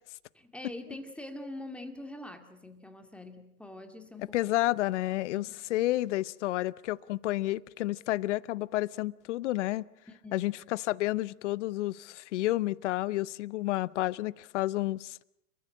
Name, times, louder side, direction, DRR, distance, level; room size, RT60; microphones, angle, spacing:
voice 1, 0.3-4.4 5.3-5.5 10.1-10.5, left 1 dB, ahead, 2.2 m, -44 dB
voice 2, 4.3-9.8 10.3-15.2, left 17 dB, 50° left, 0.8 m, -30 dB
30.0 x 14.0 x 8.9 m
hypercardioid pair, 115°, 46 cm